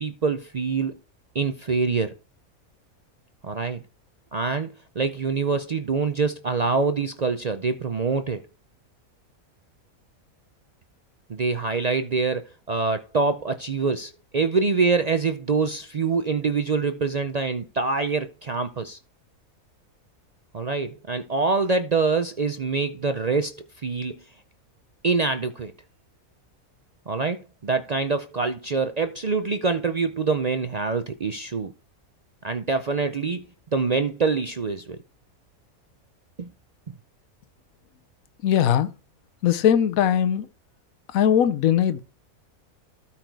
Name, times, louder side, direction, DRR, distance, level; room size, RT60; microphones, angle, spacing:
voice 1, 0.0-1.0 1.3-2.1 3.4-3.8 4.3-8.4 11.3-19.0 20.5-24.2 25.0-25.7 27.1-31.7 32.4-33.4 33.7-35.0 36.4-36.5, right 4 dB, 60° right, 0.4 m, -25 dB
voice 2, 38.4-38.9 39.4-40.5 41.1-42.0, left 9 dB, 75° left, 1.2 m, -20 dB
13.0 x 4.5 x 4.6 m
omnidirectional pair, 1.5 m